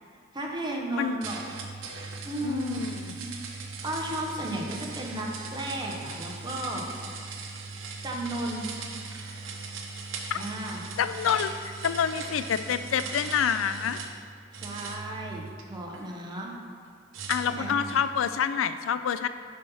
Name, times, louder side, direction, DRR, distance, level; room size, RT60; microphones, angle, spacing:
voice 1, 0.3-1.7 2.2-2.8 3.2-6.8 8.0-8.7 10.3-10.8 14.5-16.5 17.4-17.8, right 1 dB, 25° right, -1 dB, 1.0 m, -34 dB
sound 1, 1.2-14.2 14.5-16.0 17.1-18.1, right 4 dB, 85° right, 0.8 m, -39 dB
voice 2, 2.4-3.2 10.3-10.4 11.0-14.0 17.3-19.3, left 8 dB, 90° left, 12 dB, 0.4 m, -27 dB
7.6 x 4.3 x 5.5 m, 2.2 s
head